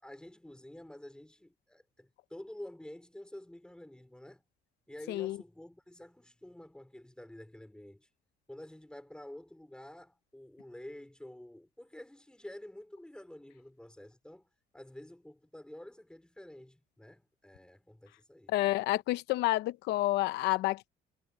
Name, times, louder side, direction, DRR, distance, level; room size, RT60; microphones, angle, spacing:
voice 1, 0.0-4.4 4.9-8.1 8.5-14.5 14.7-18.5, left 1 dB, 5° left, 3.9 m, -49 dB
voice 2, 18.5-20.9, left 17 dB, 85° left, 0.8 m, -29 dB
cardioid pair, 110°, 17 cm